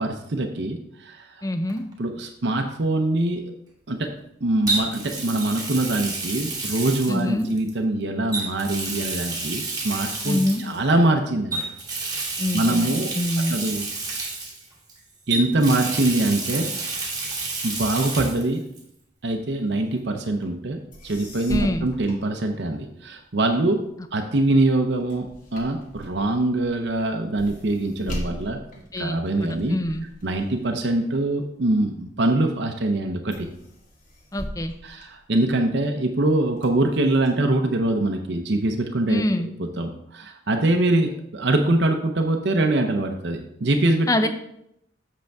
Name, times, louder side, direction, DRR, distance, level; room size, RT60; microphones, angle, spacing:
voice 1, 0.0-1.5 2.0-3.5 3.9-4.1 4.4-11.6 12.0-12.2 12.5-13.1 13.5-13.9 15.3-16.7 17.6-18.6 19.2-23.8 24.1-28.6 29.0-29.8 30.2-33.5 34.8-39.2 39.8-44.3, right 2 dB, 60° right, 4 dB, 0.7 m, -23 dB
voice 2, 1.4-1.9 7.1-7.5 10.2-10.6 12.4-12.9 13.1-13.6 21.5-21.8 28.9-30.0 34.3-34.7 39.1-39.5 44.1-44.3, left 1 dB, 15° left, 9 dB, 0.5 m, -25 dB
Water tap faucet, 1.7-1.9 4.7-7.7 8.3-10.8 11.5-14.9 15.3-18.4 18.7-18.8 20.4-20.5, right 3 dB, 20° right, 1.4 m, -30 dB
sound 1, 20.6-20.7 20.9-23.0 23.5-32.1 32.6-33.0 33.3-35.8 36.3-37.3, equal, 45° left, 1.9 m, -39 dB
7.8 x 6.4 x 3.5 m, 0.76 s
head